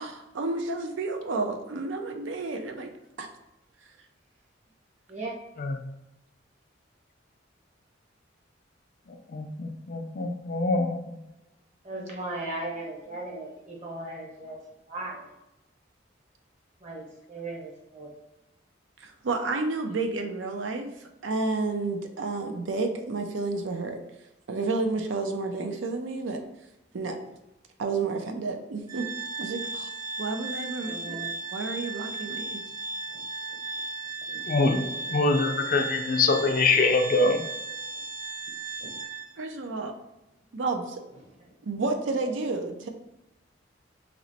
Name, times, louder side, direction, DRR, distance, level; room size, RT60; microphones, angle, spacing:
voice 1, 0.0-2.9 3.2-3.3 19.0-24.0 24.5-26.4 26.9-27.2 27.8-29.1 29.4-29.9 30.2-31.2 31.5-32.6 39.4-39.9 40.5-41.0 41.6-42.9, right 3 dB, 80° right, 5 dB, 0.5 m, -31 dB
voice 2, 9.3-11.2 34.5-34.8 35.1-37.5, left 3 dB, 45° left, 4 dB, 0.4 m, -24 dB
voice 3, 11.8-14.6 14.9-15.3 16.8-18.1 30.8-31.3 32.5-32.6 33.1-33.2 34.3-34.4 36.4-36.5 38.8-38.9 42.2-42.3, right 2 dB, 40° right, -2 dB, 1.0 m, -37 dB
Organ, 28.9-39.5, right 4 dB, 20° right, 0.4 m, -36 dB
3.0 x 2.9 x 4.1 m, 0.93 s
head